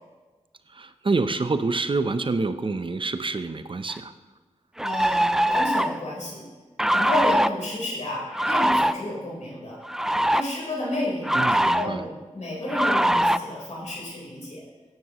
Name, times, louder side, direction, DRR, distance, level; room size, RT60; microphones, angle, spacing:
voice 1, 0.7-4.1 11.3-12.1, right 3 dB, 40° right, 10 dB, 0.7 m, -27 dB
sound 1, 3.9-4.0 4.8-6.0 6.8-7.5 8.3-8.9 9.8-10.4 11.2-11.9 12.7-13.4, right 1 dB, 5° right, 0.4 m, -22 dB
voice 2, 4.8-6.5 6.9-9.8 10.3-14.6, left 1 dB, 65° left, -5 dB, 4.0 m, -31 dB
16.5 x 9.6 x 3.0 m, 1.3 s
cardioid pair, 60°, 13 cm